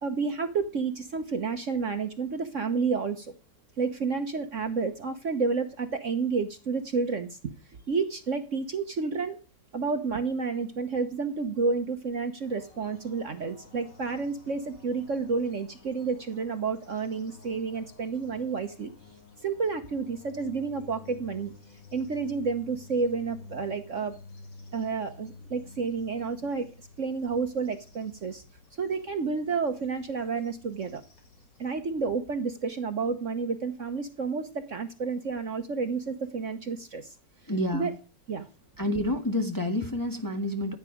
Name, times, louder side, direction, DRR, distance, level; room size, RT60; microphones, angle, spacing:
voice 1, 0.0-3.3 3.8-7.4 7.9-9.4 9.7-18.9 19.4-21.5 21.9-24.1 24.7-26.7 27.0-28.4 28.8-31.0 31.6-37.1 37.7-37.9 38.3-38.5, right 4 dB, 50° right, 7 dB, 1.2 m, -30 dB
sound 1, 12.4-31.7, left 4 dB, 75° left, 3.9 m, -52 dB
voice 2, 37.5-37.9 38.8-40.8, left 1 dB, 10° left, 3 dB, 1.3 m, -28 dB
15.0 x 8.9 x 5.0 m, 0.36 s
omnidirectional pair, 1.9 m